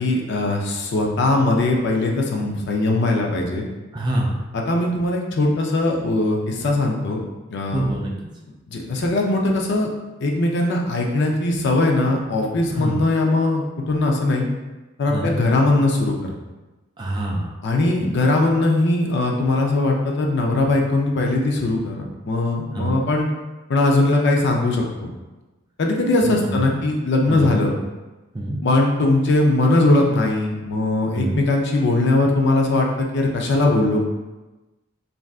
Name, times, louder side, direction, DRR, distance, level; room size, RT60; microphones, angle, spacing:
voice 1, 0.0-3.6 4.5-7.2 7.5-7.9 8.7-9.9 10.2-14.5 15.0-16.1 17.6-23.3 23.7-25.1 25.8-27.8 28.6-34.0, left 2 dB, 60° left, 0 dB, 0.5 m, -20 dB
voice 2, 3.9-4.3 7.7-8.3 12.7-13.0 15.1-15.3 17.0-17.5 18.0-18.1 22.7-23.0 26.2-26.7 27.3-27.5 28.3-28.6 31.1-31.4, right 1 dB, 20° right, -2 dB, 0.3 m, -25 dB
3.4 x 2.5 x 2.3 m, 1.1 s
head